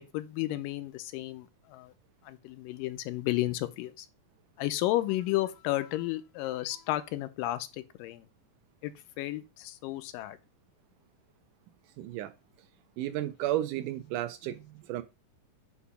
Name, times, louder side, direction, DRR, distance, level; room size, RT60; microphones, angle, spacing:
voice 1, 0.1-1.9 2.2-4.1 4.6-8.3 8.8-10.4, left 16 dB, 85° left, 2.3 m, -33 dB
voice 2, 12.0-12.3 13.0-15.0, right 13 dB, 80° right, 2.0 m, -33 dB
8.2 x 2.9 x 5.5 m
omnidirectional pair, 3.9 m